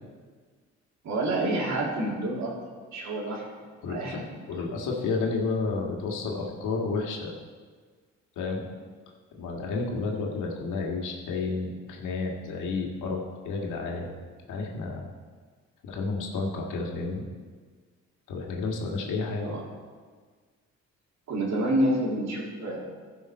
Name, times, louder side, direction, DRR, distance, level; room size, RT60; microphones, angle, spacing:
voice 1, 1.0-2.5 2.9-3.5 3.9-4.7 19.4-19.6 21.3-22.8, right 1 dB, 65° right, -3 dB, 2.8 m, -28 dB
voice 2, 3.8-4.2 4.5-7.3 8.4-8.7 9.4-13.2 13.4-14.1 14.5-15.1 15.8-17.3 18.3-19.6, left 3 dB, 85° left, -1 dB, 1.8 m, -31 dB
15.0 x 5.7 x 4.3 m, 1.5 s
cardioid pair, 90°, 30 cm